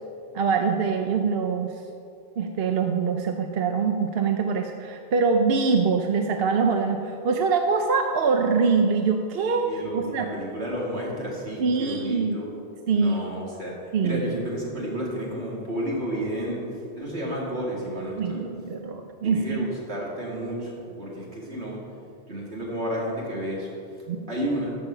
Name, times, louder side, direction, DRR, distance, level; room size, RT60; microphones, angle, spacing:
voice 1, 0.3-1.7 2.4-10.3 11.6-12.4 12.9-13.2 13.9-14.3 18.2-19.7 24.1-24.2, right 5 dB, 70° right, 5 dB, 0.8 m, -24 dB
voice 2, 9.6-12.5 12.9-13.7 14.0-16.6 16.9-18.4 19.2-21.8 22.3-23.7 24.3-24.8, equal, 85° right, -4 dB, 2.5 m, -31 dB
14.0 x 5.4 x 5.6 m, 2.6 s
omnidirectional pair, 1.1 m